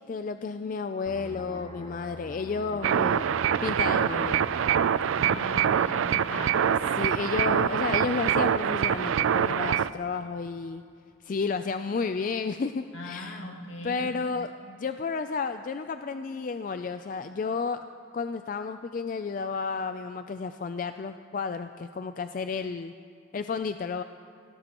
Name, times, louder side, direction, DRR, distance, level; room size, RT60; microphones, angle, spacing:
voice 1, 0.0-3.3 3.6-4.4 6.9-10.8 11.2-13.4 13.8-17.8 18.1-22.9 23.3-24.0, left 5 dB, 40° left, 9 dB, 0.3 m, -32 dB
sound 1, 1.1-6.4 6.8-7.0, left 1 dB, 25° left, 0.7 m, -45 dB
sound 2, 2.8-9.9, right 8 dB, 80° right, 0.4 m, -25 dB
voice 2, 5.1-6.6 12.9-14.1, left 1 dB, 75° left, 0 dB, 2.2 m, -39 dB
24.5 x 17.5 x 3.0 m, 2.4 s
head